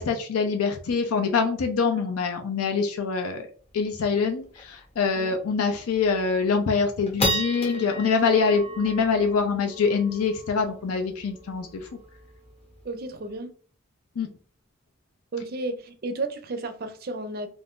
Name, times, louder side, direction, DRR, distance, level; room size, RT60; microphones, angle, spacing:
voice 1, 0.0-3.5 3.7-11.8 14.2-14.3, left 5 dB, 85° left, 0.5 m, -24 dB
sound 1, 3.7-3.8 4.1-4.2 4.5-4.8 5.3-5.4 5.9-6.3 6.7-13.3, equal, 25° left, 0.7 m, -34 dB
voice 2, 12.8-13.5 15.3-17.5, right 2 dB, 45° right, 0.4 m, -33 dB
2.4 x 2.4 x 3.5 m
head